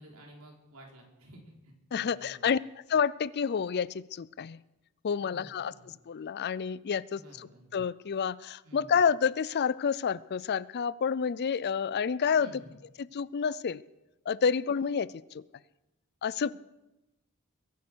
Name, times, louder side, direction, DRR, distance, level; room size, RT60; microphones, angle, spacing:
voice 1, 0.0-2.5 5.2-5.9 7.1-7.7 8.6-8.9 12.4-12.7 16.4-16.5, equal, 75° right, 0 dB, 4.1 m, -52 dB
voice 2, 1.9-2.6 2.9-4.6 5.0-5.7 6.1-12.5 13.0-13.8 14.3-15.4 16.2-16.5, left 6 dB, 50° left, 20 dB, 0.4 m, -29 dB
22.0 x 9.6 x 6.2 m, 0.97 s
head